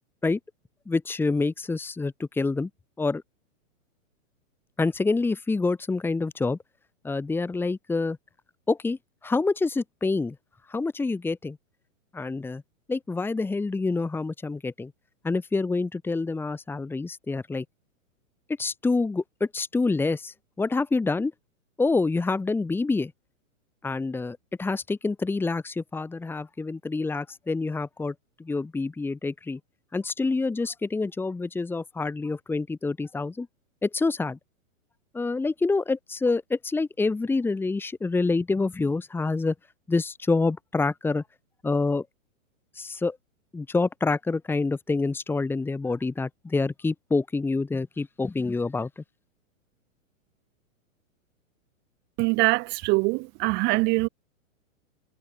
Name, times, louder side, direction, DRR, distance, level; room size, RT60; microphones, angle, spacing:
voice 1, 0.9-2.7 3.0-3.2 4.8-6.6 7.0-8.2 8.7-10.4 10.7-11.6 12.1-12.6 12.9-14.9 15.2-17.6 18.6-21.3 21.8-23.1 23.8-28.1 28.4-29.6 29.9-33.5 33.8-34.4 35.1-39.5 39.9-41.2 41.6-42.1 42.8-43.2 43.5-49.0, left 3 dB, 5° left, 3.5 m, -27 dB
voice 2, 52.2-54.1, right 26 dB, 25° right, 2.0 m, -23 dB
hypercardioid pair, 160°, 41 cm